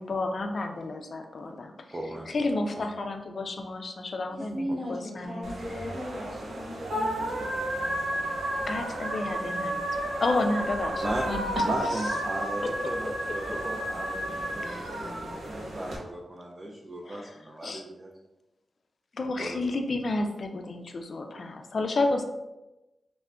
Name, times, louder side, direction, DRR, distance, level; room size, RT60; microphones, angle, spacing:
voice 1, 0.0-2.0 2.3-5.5 8.7-12.1 12.6-12.7 13.3-13.6 14.6-15.2 17.0-17.8 19.1-22.2, left 2 dB, 60° left, 5 dB, 0.3 m, -31 dB
voice 2, 1.9-2.3 2.8-2.9 11.0-11.2 11.6-15.2 15.5-18.1 19.4-19.6, right 1 dB, 35° right, -1 dB, 0.4 m, -36 dB
voice 3, 4.3-8.0, equal, 60° right, -7 dB, 1.0 m, -37 dB
sound 1, 5.4-16.0, right 1 dB, 85° right, 0.6 m, -32 dB
3.3 x 2.1 x 2.4 m, 1.0 s
cardioid pair, 55°, 0 cm